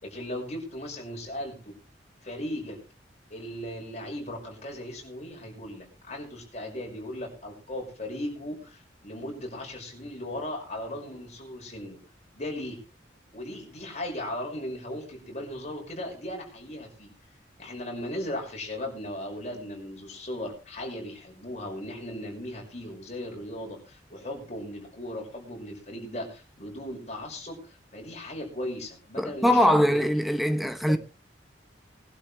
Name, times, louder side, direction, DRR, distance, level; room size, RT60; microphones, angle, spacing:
voice 1, 0.0-1.7 2.2-2.8 3.3-12.0 12.3-12.8 13.3-17.1 17.6-30.0 30.9-31.0, left 1 dB, 40° left, 5.6 m, -37 dB
voice 2, 29.2-31.0, equal, ahead, 0.7 m, -22 dB
21.0 x 11.5 x 3.3 m
head